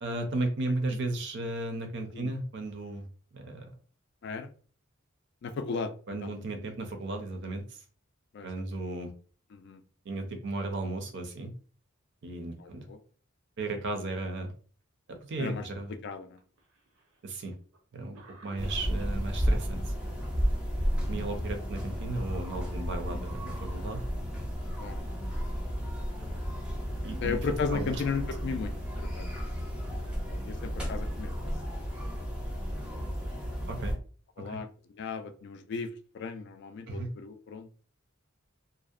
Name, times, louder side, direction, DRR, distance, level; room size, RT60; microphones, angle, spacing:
voice 1, 0.0-3.0 3.3-3.7 6.1-7.8 8.4-9.1 10.1-11.5 12.2-12.9 13.6-14.5 15.1-15.9 17.2-17.6 17.9-19.9 21.1-24.0 27.0-27.4 27.7-28.0 33.7-34.0 34.4-34.6 36.9-37.1, right 2 dB, 55° right, 6 dB, 0.5 m, -35 dB
voice 2, 5.4-5.9 6.2-6.3 8.3-8.6 9.5-9.8 12.6-13.0 15.4-15.6 16.0-16.4 24.8-25.0 27.2-29.3 29.7-29.9 30.2-31.5 34.4-34.7 35.0-35.9 36.1-37.7, left 5 dB, 55° left, 10 dB, 0.3 m, -35 dB
Cough, 16.3-17.2 17.7-17.8 18.1-19.7 21.5-22.0 22.3-22.4 23.2-23.9 24.7-24.8 25.9-26.0 27.1-27.3 27.9-29.2 30.1-31.6, right 2 dB, 85° right, 0.7 m, -55 dB
sound 1, 18.6-33.9, equal, 5° right, 0.5 m, -33 dB
2.6 x 2.0 x 2.4 m, 0.40 s
head